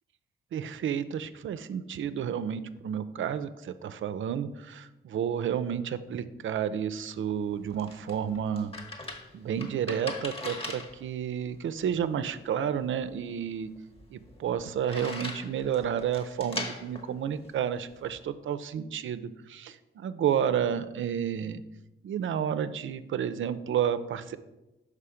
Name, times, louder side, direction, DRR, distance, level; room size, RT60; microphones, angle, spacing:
voice 1, 0.5-8.7 9.3-13.7 14.1-21.6 22.0-24.4, right 8 dB, 70° right, 12 dB, 0.4 m, -31 dB
sound 1, 7.3-18.2, left 2 dB, 25° left, 1.2 m, -42 dB
5.6 x 4.8 x 4.9 m, 1.0 s
cardioid pair, 60°, 21 cm